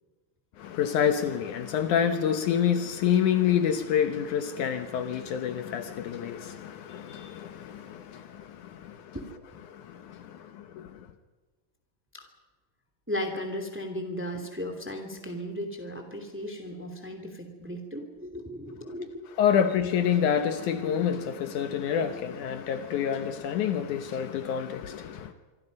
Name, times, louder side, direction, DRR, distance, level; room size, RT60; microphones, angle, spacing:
voice 1, 0.6-9.2 9.7-11.1 19.4-25.3, left 8 dB, 70° left, 2.3 m, -28 dB
voice 2, 13.1-19.3, equal, 5° right, 2.2 m, -36 dB
25.5 x 25.0 x 5.4 m
omnidirectional pair, 3.9 m